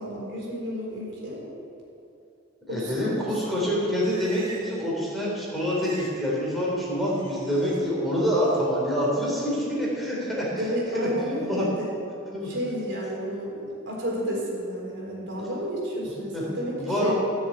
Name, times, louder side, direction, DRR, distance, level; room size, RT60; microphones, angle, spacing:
voice 1, 0.0-1.4 2.7-3.2 10.5-11.9 12.4-17.1, equal, 60° right, -4 dB, 4.2 m, -31 dB
voice 2, 2.7-10.7 10.9-11.6 12.3-12.5 16.3-16.4 16.8-17.1, equal, ahead, -6 dB, 3.8 m, -26 dB
Livestock farm animals working animals, 3.8-4.9 5.2-6.2 6.5-7.8 8.3-8.7, right 3 dB, 30° right, 3.2 m, -46 dB
16.0 x 7.2 x 8.9 m, 2.7 s
head